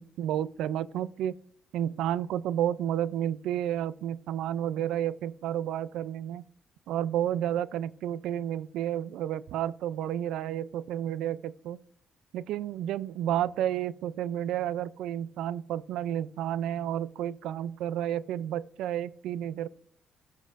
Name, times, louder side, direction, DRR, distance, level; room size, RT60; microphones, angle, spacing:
voice 1, 0.0-1.3 1.7-6.4 6.9-11.8 12.3-19.7, right 11 dB, 85° right, 0.3 m, -31 dB
14.0 x 5.5 x 2.5 m
cardioid pair, 90°, 0 cm